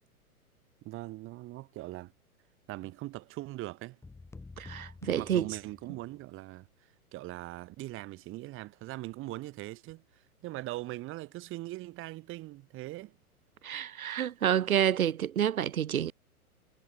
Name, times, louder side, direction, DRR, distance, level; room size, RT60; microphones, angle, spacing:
voice 1, 0.8-2.1 2.7-4.0 5.1-6.7 7.1-10.0 10.4-13.1, right 18 dB, 25° right, 7.5 m, -41 dB
sound 1, 4.0-6.3, left 3 dB, 5° left, 3.3 m, -49 dB
voice 2, 4.6-5.6 13.6-16.1, right 10 dB, 65° right, 0.7 m, -29 dB
figure-of-eight pair, 110°, 45 cm